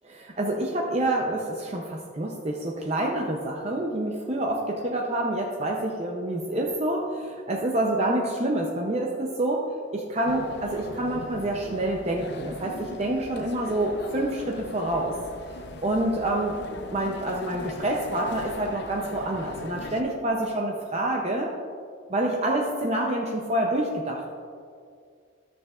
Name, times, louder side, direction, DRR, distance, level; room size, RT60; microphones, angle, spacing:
voice 1, 0.1-9.6 9.9-15.1 15.8-16.6 16.9-21.5 22.1-24.3, right 1 dB, 30° right, -1 dB, 0.6 m, -27 dB
sound 1, 10.3-20.0, left 2 dB, 55° left, 0.5 m, -39 dB
13.0 x 6.6 x 2.4 m, 2.2 s
head